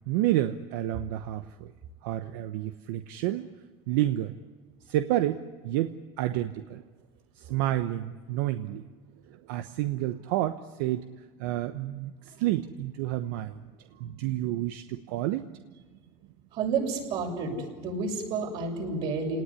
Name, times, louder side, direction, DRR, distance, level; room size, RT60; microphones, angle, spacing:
voice 1, 0.1-1.7 2.0-3.5 3.9-4.4 4.8-6.8 7.3-8.9 9.3-11.1 11.4-13.7 14.0-15.6, right 14 dB, 85° right, 9 dB, 1.0 m, -30 dB
voice 2, 16.5-19.4, right 4 dB, 60° right, 1 dB, 7.0 m, -30 dB
30.0 x 19.0 x 9.8 m, 1.4 s
cardioid pair, 140°, 10 cm